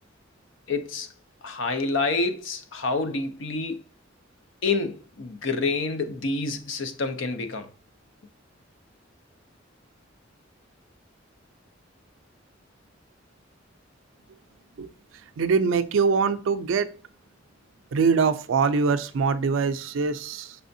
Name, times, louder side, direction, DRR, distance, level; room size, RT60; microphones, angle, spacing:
voice 1, 0.7-1.1 1.4-3.8 4.6-7.7, left 3 dB, 70° left, 0.6 m, -28 dB
voice 2, 15.4-16.9 17.9-20.6, right 5 dB, 75° right, 0.4 m, -23 dB
5.5 x 3.3 x 2.6 m
head